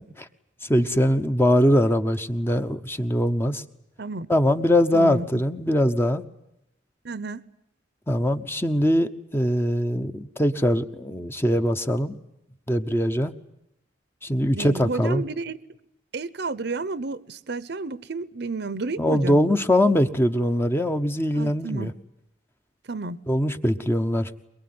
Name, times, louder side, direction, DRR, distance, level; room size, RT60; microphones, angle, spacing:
voice 1, 0.6-3.6 4.3-6.2 8.1-12.1 12.7-13.3 14.2-15.2 19.0-21.9 23.3-24.3, equal, 10° left, 0.9 m, -22 dB
voice 2, 4.9-5.3 7.0-7.4 14.5-15.6 16.1-19.4 21.3-21.9 22.9-23.2, right 3 dB, 60° right, 0.9 m, -31 dB
23.0 x 22.5 x 9.5 m
head